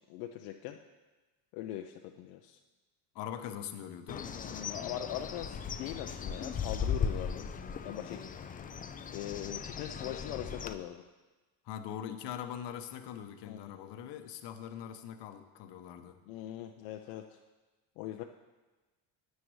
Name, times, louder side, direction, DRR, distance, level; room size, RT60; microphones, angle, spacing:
voice 1, 0.1-0.8 1.5-2.6 4.3-7.5 7.8-8.2 9.1-11.0 13.4-13.9 16.3-17.4 18.0-18.2, left 12 dB, 80° left, 4 dB, 0.6 m, -41 dB
voice 2, 3.1-4.4 11.6-16.2, left 9 dB, 60° left, 8 dB, 0.9 m, -42 dB
Bird, 4.1-10.7, left 6 dB, 20° left, 0.3 m, -37 dB
9.5 x 9.3 x 3.2 m, 1.2 s
supercardioid pair, 80°, 48 cm